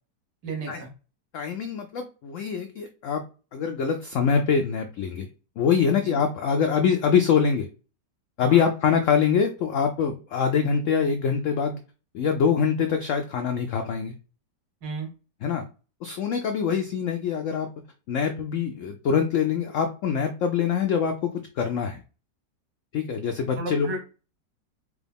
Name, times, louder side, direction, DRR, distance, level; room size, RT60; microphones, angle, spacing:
voice 1, 0.4-0.9 6.0-6.2 8.4-8.7 14.8-15.1 23.6-24.0, right 2 dB, 80° right, 1 dB, 1.8 m, -33 dB
voice 2, 1.3-3.2 3.5-5.3 5.6-7.7 8.4-11.8 12.1-14.1 15.4-15.6 16.0-17.7 18.1-21.3 21.6-22.0 22.9-23.9, left 6 dB, 90° left, 5 dB, 0.6 m, -24 dB
4.7 x 2.2 x 3.4 m, 0.34 s
omnidirectional pair, 1.9 m